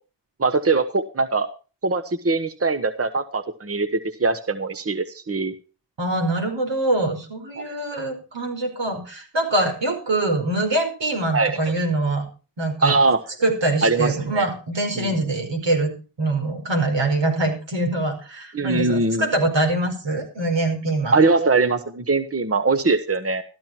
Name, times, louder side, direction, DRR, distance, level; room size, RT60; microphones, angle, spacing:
voice 1, 0.4-1.5 1.8-5.5 7.6-7.7 11.3-11.6 12.8-13.2 13.8-14.5 15.0-15.1 18.5-19.2 21.1-23.4, right 3 dB, 30° right, 8 dB, 1.2 m, -21 dB
voice 2, 6.0-12.3 12.6-13.0 13.4-15.9 16.2-21.2, right 2 dB, 80° right, 4 dB, 5.0 m, -24 dB
14.0 x 12.5 x 4.5 m, 0.35 s
wide cardioid pair, 70°, 43 cm